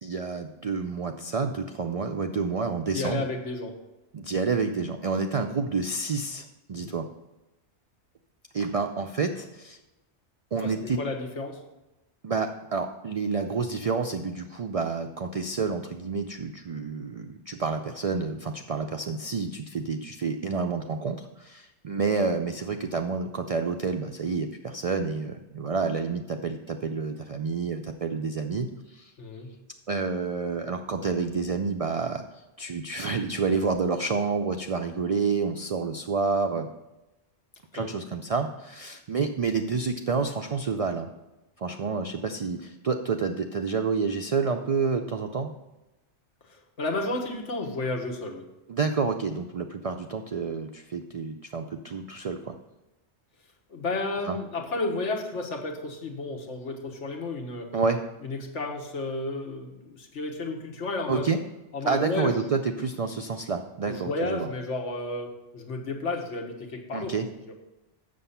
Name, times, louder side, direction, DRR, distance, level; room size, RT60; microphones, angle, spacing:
voice 1, 0.0-3.3 4.1-7.1 8.5-9.8 10.5-11.0 12.2-29.1 29.9-32.2 32.6-36.7 37.7-41.1 41.6-45.5 48.7-52.5 54.2-54.4 57.7-58.0 61.1-61.4 61.8-64.5 66.9-67.3, right 4 dB, 65° right, 5 dB, 0.3 m, -29 dB
voice 2, 2.9-3.8 6.7-6.9 10.6-11.6 29.2-29.5 37.7-37.9 46.5-48.4 53.7-57.7 58.2-61.3 61.7-62.9 63.9-67.1 67.5-67.6, left 2 dB, 85° left, 3 dB, 1.5 m, -32 dB
7.5 x 6.7 x 5.6 m, 1.0 s
omnidirectional pair, 1.2 m